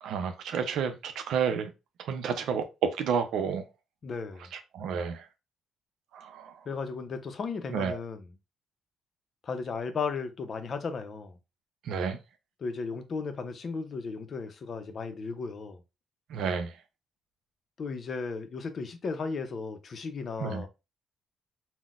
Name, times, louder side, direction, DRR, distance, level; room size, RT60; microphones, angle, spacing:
voice 1, 0.0-1.7 2.0-3.6 4.5-5.3 6.1-6.6 7.7-8.0 11.8-12.2 16.3-16.7 20.4-20.6, right 6 dB, 80° right, 0.4 m, -30 dB
voice 2, 4.0-4.5 6.7-8.2 9.4-11.3 12.6-15.8 17.8-20.7, left 4 dB, 50° left, 0.5 m, -35 dB
3.8 x 2.1 x 2.4 m
cardioid pair, 90°, 0 cm